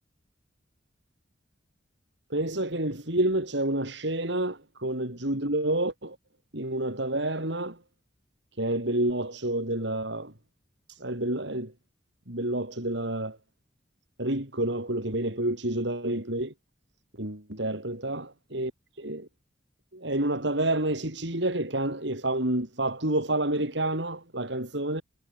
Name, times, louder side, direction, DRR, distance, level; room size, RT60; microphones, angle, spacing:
voice 1, 2.3-6.2 6.5-7.8 8.6-10.3 10.9-11.7 12.3-13.4 14.2-16.5 17.2-19.3 19.9-25.0, right 1 dB, 70° right, 5.7 m, -29 dB
head